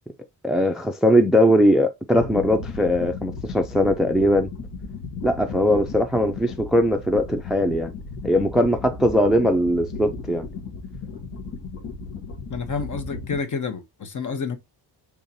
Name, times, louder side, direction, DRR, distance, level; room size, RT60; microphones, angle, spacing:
voice 1, 0.4-4.5 5.2-7.9 8.2-10.4, equal, ahead, 0.3 m, -20 dB
sound 1, 2.1-13.4, left 4 dB, 80° left, 1.4 m, -35 dB
voice 2, 12.5-14.6, left 5 dB, 45° left, 0.9 m, -29 dB
5.5 x 3.6 x 2.6 m
wide cardioid pair, 170°, 41 cm